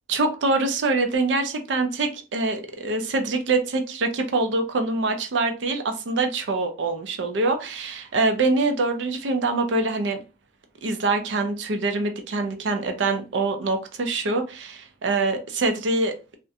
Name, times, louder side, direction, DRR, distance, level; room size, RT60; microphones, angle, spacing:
voice 1, 0.1-10.2 10.8-16.4, right 3 dB, 80° right, 6 dB, 0.5 m, -24 dB
2.4 x 2.1 x 2.6 m, 0.31 s
head